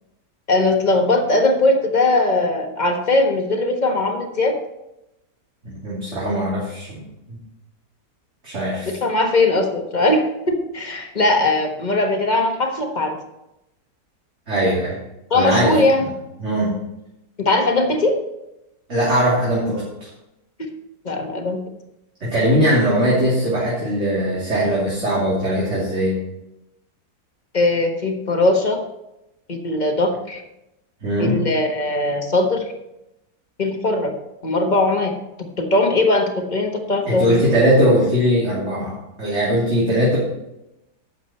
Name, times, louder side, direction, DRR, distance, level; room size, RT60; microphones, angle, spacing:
voice 1, 0.5-4.5 9.0-13.2 15.3-16.1 17.4-18.1 21.0-21.6 27.5-28.8 29.5-30.4 31.2-32.6 33.6-34.1 34.4-35.1 35.6-37.4, left 2 dB, 30° left, 3 dB, 1.3 m, -19 dB
voice 2, 5.6-7.4 8.4-9.0 14.5-15.0 15.3-15.7 16.4-16.7 18.9-19.8 22.2-26.1 31.0-31.4 37.1-40.2, equal, 40° right, -7 dB, 3.2 m, -20 dB
11.5 x 7.9 x 4.3 m, 0.89 s
omnidirectional pair, 1.9 m